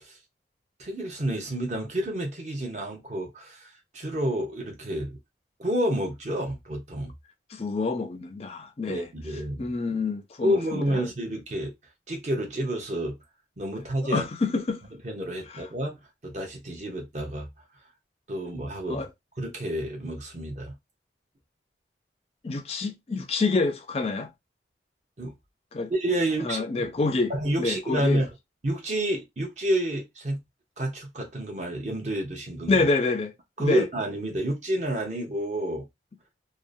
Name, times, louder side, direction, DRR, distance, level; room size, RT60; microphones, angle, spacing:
voice 1, 0.8-5.2 5.6-7.1 8.9-9.7 10.4-11.7 12.1-13.2 13.6-14.2 15.0-16.0 16.2-17.5 18.3-19.1 19.4-20.8 25.2-25.3 25.9-26.9 27.3-28.3 28.6-30.4 30.8-32.8 33.6-35.9, right 1 dB, 40° right, 0.8 m, -29 dB
voice 2, 7.5-9.1 9.6-11.0 14.1-14.8 15.5-15.7 18.9-19.1 22.4-24.3 25.7-25.9 26.4-27.3 27.6-28.2 32.7-33.3 33.6-33.9, left 3 dB, 35° left, 0.3 m, -27 dB
2.6 x 2.0 x 2.5 m
head